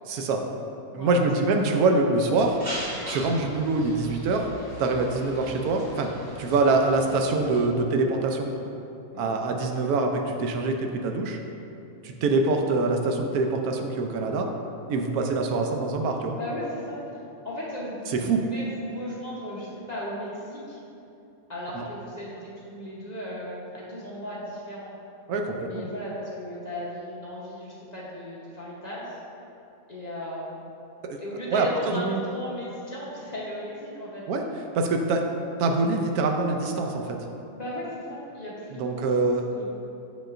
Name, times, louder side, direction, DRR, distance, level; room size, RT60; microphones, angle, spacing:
voice 1, 0.1-0.4 0.9-2.6 3.1-4.5 4.8-6.1 6.4-8.5 9.2-11.4 12.0-14.5 14.9-16.4 18.1-18.4 21.7-21.8 25.3-25.9 31.1-31.2 31.5-32.2 34.3-34.4 34.7-35.2 35.6-37.2 38.7-39.4, right 3 dB, 90° right, 3 dB, 1.1 m, -24 dB
voice 2, 0.9-1.6 9.1-9.3 16.4-17.2 17.4-20.8 21.5-24.9 25.6-29.2 29.9-30.6 31.2-34.2 37.5-39.7, left 1 dB, 35° left, -7 dB, 0.9 m, -36 dB
sound 1, 2.4-7.6, right 1 dB, 40° right, 1.4 m, -39 dB
7.5 x 5.2 x 2.5 m, 2.8 s
omnidirectional pair, 1.5 m